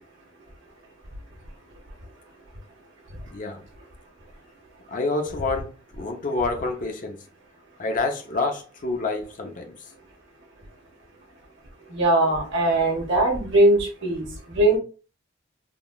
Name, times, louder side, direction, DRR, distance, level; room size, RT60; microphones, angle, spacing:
voice 1, 4.9-7.2 7.8-9.7, left 3 dB, 45° left, 0.6 m, -28 dB
voice 2, 11.9-14.3 14.5-14.8, right 1 dB, 65° right, 1.2 m, -20 dB
3.6 x 2.3 x 2.3 m
head